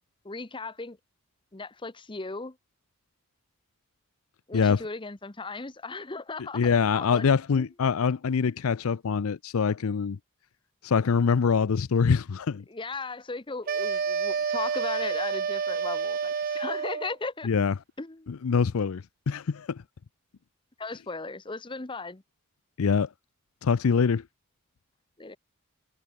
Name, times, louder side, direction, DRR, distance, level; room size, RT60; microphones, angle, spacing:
voice 1, 0.2-1.0 1.5-2.6 4.5-6.7 6.9-7.3 7.5-7.7 12.7-17.5 18.0-18.3 20.8-22.2 25.2-25.4, left 3 dB, 20° left, 0.8 m, -37 dB
voice 2, 6.5-10.2 10.8-12.6 17.4-17.7 18.3-19.8 22.8-23.1 23.6-24.2, left 5 dB, 75° left, 0.5 m, -24 dB
sound 1, 13.7-17.2, right 6 dB, 40° right, 0.4 m, -29 dB
head